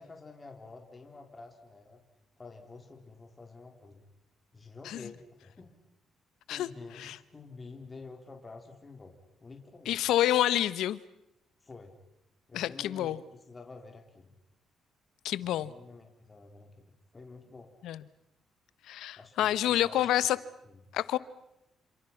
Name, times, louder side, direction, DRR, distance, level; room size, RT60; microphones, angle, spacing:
voice 1, 0.0-2.0 2.4-4.1 4.5-5.7 6.5-10.0 11.6-11.9 12.5-14.4 15.4-17.7 19.2-20.1 20.7-20.8, left 3 dB, 25° left, 3 dB, 3.8 m, -49 dB
voice 2, 9.9-11.0 12.5-13.2 15.2-15.7 17.8-18.0 18.9-20.4 20.9-21.2, left 13 dB, 85° left, 17 dB, 1.0 m, -28 dB
29.0 x 27.0 x 5.9 m, 0.85 s
cardioid pair, 90°, 0 cm